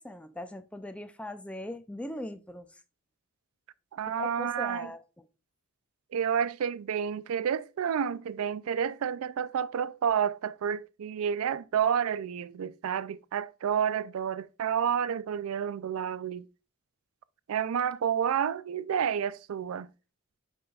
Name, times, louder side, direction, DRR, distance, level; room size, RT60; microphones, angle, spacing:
voice 1, 0.0-2.7 4.1-5.0, left 1 dB, 5° left, 0.4 m, -40 dB
voice 2, 3.9-4.9 6.1-16.5 17.5-19.9, right 8 dB, 85° right, 0.4 m, -30 dB
8.6 x 5.4 x 2.3 m
head